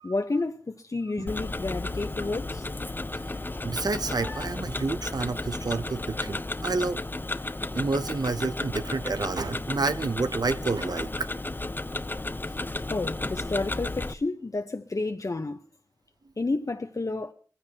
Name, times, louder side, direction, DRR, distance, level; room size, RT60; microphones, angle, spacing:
voice 1, 0.0-2.7 12.9-15.6 16.4-17.3, left 3 dB, 55° left, 0.9 m, -30 dB
Tick-tock, 1.3-14.1, left 2 dB, 30° left, 0.7 m, -33 dB
voice 2, 3.6-7.0 7.7-11.3, right 3 dB, 70° right, 0.7 m, -29 dB
21.0 x 15.5 x 2.9 m
wide cardioid pair, 45°, 7 cm